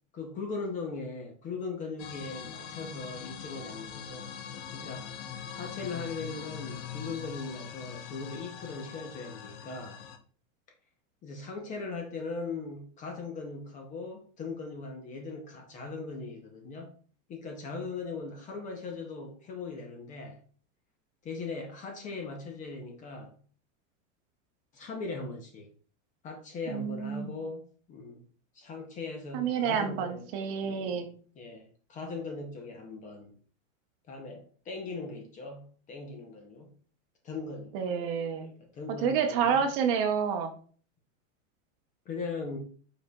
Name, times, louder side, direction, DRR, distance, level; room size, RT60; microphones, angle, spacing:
voice 1, 0.1-4.3 4.7-5.1 5.5-10.0 11.2-16.9 17.3-20.4 21.2-23.4 24.7-25.7 26.2-28.2 28.5-30.3 30.6-31.1 31.4-33.3 34.1-36.7 37.2-37.8 38.4-39.6 42.1-42.6, left 4 dB, 20° left, 0.6 m, -39 dB
sound 1, 2.0-10.2, left 8 dB, 55° left, 0.8 m, -42 dB
voice 2, 26.7-27.4 29.3-31.1 37.7-38.5 39.0-40.5, right 7 dB, 40° right, 0.8 m, -29 dB
5.0 x 4.7 x 2.2 m
supercardioid pair, 160°, 40 cm